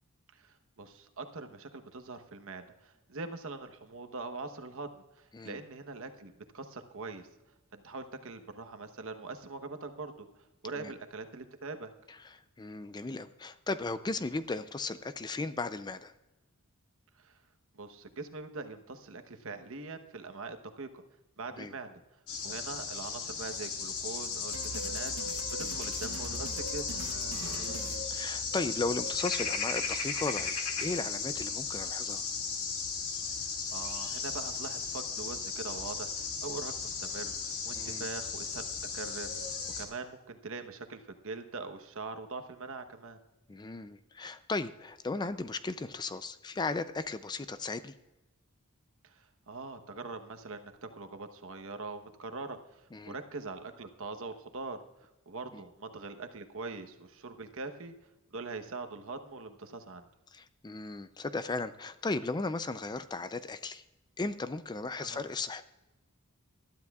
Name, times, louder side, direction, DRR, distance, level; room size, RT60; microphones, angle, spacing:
voice 1, 0.4-4.9 5.2-7.3 7.7-10.3 10.6-11.9 17.2-17.3 17.7-21.0 21.4-21.9 22.4-25.1 25.5-26.9 33.4-37.3 37.7-38.6 38.9-39.3 39.8-43.2 49.0-52.8 53.1-54.8 55.3-57.9 58.3-60.1 65.0-65.2, right 3 dB, 65° right, 7 dB, 1.0 m, -42 dB
voice 2, 12.1-16.1 21.6-21.7 27.4-32.2 37.7-38.1 43.5-47.9 52.9-53.1 55.5-55.6 60.3-63.8 64.2-65.6, left 3 dB, 20° left, 12 dB, 0.4 m, -36 dB
sound 1, 22.3-39.8, left 5 dB, 80° left, 2.3 m, -36 dB
sound 2, 24.5-28.8, right 3 dB, 90° right, 0.9 m, -42 dB
20.0 x 12.5 x 2.4 m, 1.0 s
head